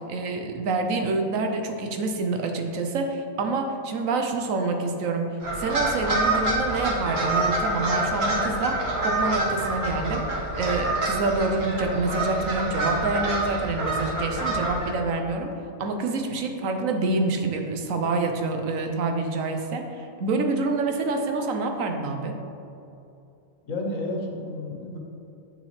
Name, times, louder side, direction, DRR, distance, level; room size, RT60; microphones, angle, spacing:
voice 1, 0.1-5.3 5.6-15.5 15.8-22.4, right 3 dB, 85° right, 4 dB, 1.2 m, -27 dB
sound 1, 5.4-14.9, right 2 dB, 50° right, 1.4 m, -26 dB
voice 2, 23.6-25.0, left 1 dB, 80° left, 0 dB, 1.5 m, -31 dB
8.6 x 7.0 x 3.2 m, 2.7 s
omnidirectional pair, 1.4 m